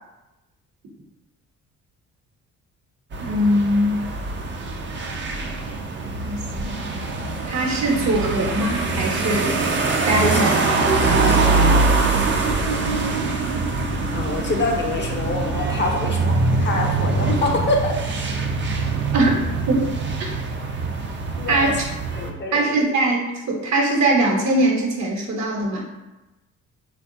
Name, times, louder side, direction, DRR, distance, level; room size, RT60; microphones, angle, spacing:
sound 1, 3.1-22.3, right 3 dB, 40° right, 0.5 m, -23 dB
voice 1, 3.2-4.0 6.2-6.9 7.5-9.5 10.1-10.6 19.1-19.4 19.7-19.9 21.5-21.8 22.5-25.8, right 1 dB, 65° right, -1 dB, 1.0 m, -21 dB
voice 2, 11.1-11.6 14.1-17.9 21.4-21.7 22.2-22.7, left 2 dB, 40° left, 1 dB, 0.6 m, -25 dB
3.6 x 2.2 x 2.6 m, 1.0 s
cardioid pair, 90°, 30 cm